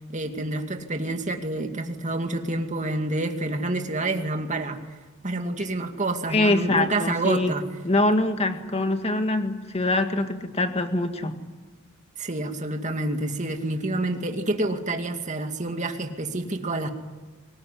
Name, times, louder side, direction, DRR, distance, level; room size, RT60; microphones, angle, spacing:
voice 1, 0.1-4.8 5.2-7.6 12.2-16.9, right 2 dB, 35° right, 5 dB, 2.3 m, -28 dB
voice 2, 6.3-7.5 7.8-11.3, left 2 dB, 30° left, 7 dB, 2.0 m, -24 dB
25.0 x 20.0 x 9.9 m, 1.3 s
head